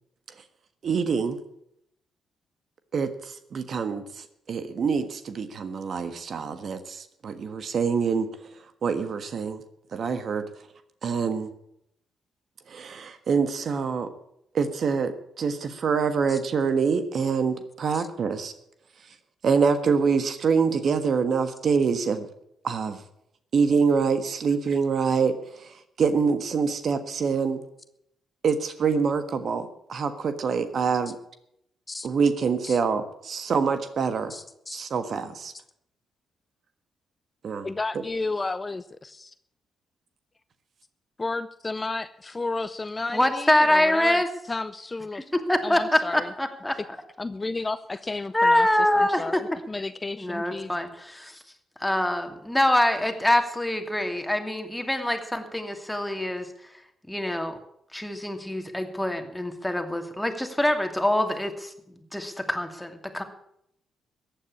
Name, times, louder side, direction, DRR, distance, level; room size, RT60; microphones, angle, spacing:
voice 1, 0.8-1.4 2.9-8.3 8.8-9.6 9.9-10.5 11.0-11.5 12.7-14.1 14.5-18.5 19.4-22.3 22.6-23.0 23.5-27.6 28.4-31.2 32.0-34.3 34.7-35.5 37.4-37.7, right 5 dB, 60° right, 10 dB, 1.4 m, -25 dB
voice 2, 34.3-34.8 37.6-39.3 41.2-44.2 44.5-45.3 45.6-46.3 47.2-48.7 48.9-50.7, left 3 dB, 30° left, 14 dB, 0.7 m, -32 dB
voice 3, 43.1-44.3 45.1-46.8 48.3-49.4 50.2-51.4 51.8-56.8 57.1-57.6 57.9-63.2, left 1 dB, 10° left, 5 dB, 2.6 m, -25 dB
14.5 x 9.3 x 8.5 m, 0.76 s
hypercardioid pair, 45°, 0 cm